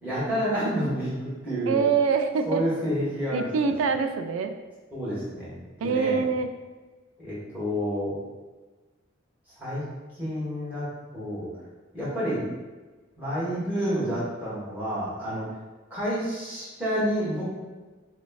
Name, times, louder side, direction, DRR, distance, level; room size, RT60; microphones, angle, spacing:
voice 1, 0.0-1.8 2.4-3.7 4.9-6.2 7.2-8.2 9.6-9.8 10.2-10.9 11.1-11.5 11.9-12.4 13.2-15.5 15.9-17.5, equal, 10° right, -11 dB, 1.2 m, -29 dB
voice 2, 1.7-2.6 3.3-4.5 5.8-6.5, right 5 dB, 80° right, 8 dB, 0.3 m, -24 dB
4.1 x 2.2 x 2.3 m, 1.2 s
head